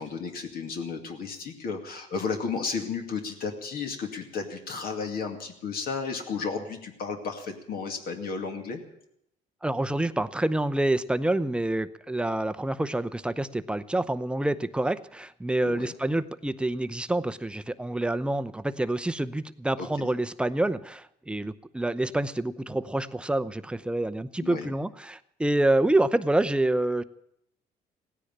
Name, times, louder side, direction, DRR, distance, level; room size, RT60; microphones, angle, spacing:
voice 1, 0.0-8.8 15.6-15.9 19.8-19.9 24.4-24.7, left 5 dB, 60° left, 4 dB, 2.3 m, -33 dB
voice 2, 9.6-27.0, right 1 dB, 5° right, 12 dB, 0.7 m, -27 dB
16.5 x 10.0 x 8.7 m, 0.74 s
cardioid pair, 110°, 17 cm